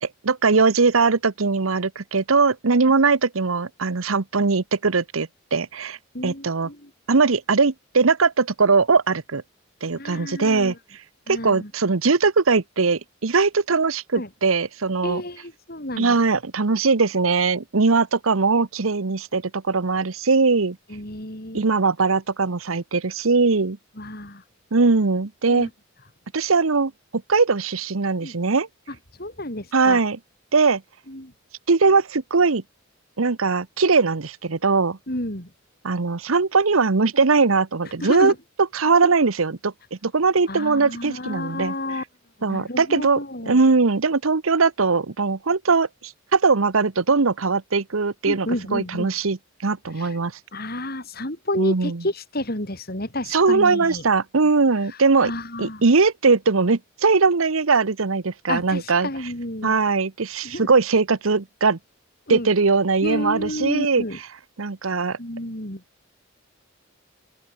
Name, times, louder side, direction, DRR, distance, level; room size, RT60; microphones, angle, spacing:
voice 1, 0.0-6.0 6.2-6.7 7.1-9.4 9.8-10.7 11.3-15.2 16.0-20.8 21.5-23.8 24.7-25.7 26.3-26.9 27.3-28.7 29.7-30.2 30.5-30.8 31.7-32.6 33.2-35.0 35.8-38.3 38.7-39.7 40.0-41.7 42.4-43.2 43.5-50.3 51.6-52.0 53.3-55.3 55.6-59.1 59.6-61.8 62.3-64.0 64.6-65.2, right 4 dB, 85° right, 1.0 m, -20 dB
voice 2, 6.1-6.9 9.9-10.8 11.3-11.7 14.1-14.3 15.0-16.2 20.9-21.7 24.0-24.4 25.5-25.7 28.2-28.3 29.2-30.0 31.1-31.3 35.1-35.5 38.0-38.3 40.5-42.0 42.5-43.6 48.3-49.2 50.0-50.2 50.5-54.0 55.2-55.8 58.5-59.8 60.4-60.7 62.3-62.5 63.0-64.2 65.2-65.8, left 1 dB, 50° left, 6.5 m, -30 dB
open air
head